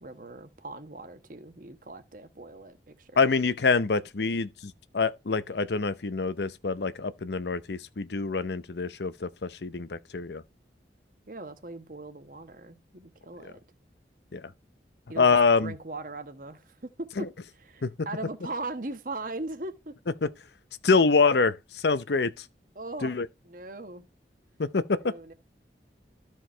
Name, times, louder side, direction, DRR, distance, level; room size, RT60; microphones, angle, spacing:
voice 1, 0.0-3.3 4.2-4.4 11.3-13.6 15.1-19.9 22.7-23.1 23.4-24.0 25.0-25.3, right 2 dB, 50° right, 1.2 m, -39 dB
voice 2, 3.2-10.4 14.3-14.4 15.2-15.7 17.2-17.3 17.8-17.9 20.2-20.3 20.8-22.4 23.0-23.3 24.6-25.1, left 4 dB, 75° left, 0.7 m, -25 dB
13.5 x 4.7 x 4.4 m
head